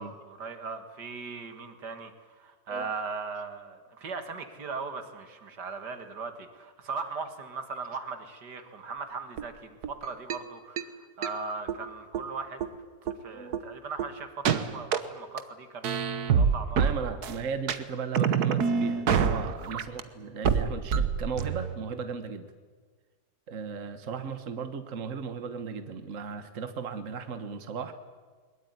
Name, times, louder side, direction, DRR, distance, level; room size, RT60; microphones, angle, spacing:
voice 1, 0.0-12.6 13.2-16.9 19.4-19.5, right 4 dB, 85° right, 8 dB, 2.4 m, -39 dB
sound 1, 9.4-9.5 9.8-9.9 10.3-10.4 10.8-10.9 11.2-11.3 11.7-11.8 12.1-12.2 12.6-12.7 13.1-13.2 13.5-13.6 14.0-14.1 14.5-15.0 15.4-15.5 15.8-17.4 17.7-17.8 18.1-20.0 20.4-21.7, right 6 dB, 70° right, 1.7 m, -26 dB
voice 2, 16.8-22.5 23.5-27.9, right 5 dB, 50° right, 9 dB, 1.6 m, -36 dB
22.0 x 21.5 x 9.6 m, 1.5 s
omnidirectional pair, 1.7 m